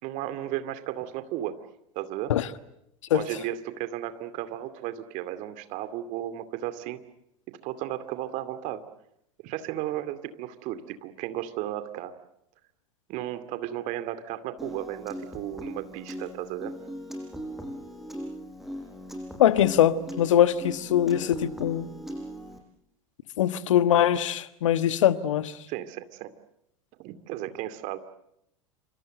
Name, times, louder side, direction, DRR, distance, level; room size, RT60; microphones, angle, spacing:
voice 1, 0.0-1.7 1.9-2.3 3.1-7.0 7.6-8.8 9.4-12.2 13.1-16.7 25.7-26.3 27.0-28.1, right 13 dB, 45° right, 2.5 m, -34 dB
Piano, 14.6-22.6, equal, ahead, 7.9 m, -39 dB
voice 2, 19.4-21.9 23.4-25.5, left 11 dB, 65° left, 1.4 m, -22 dB
28.0 x 26.5 x 8.0 m
figure-of-eight pair, 85°, 17 cm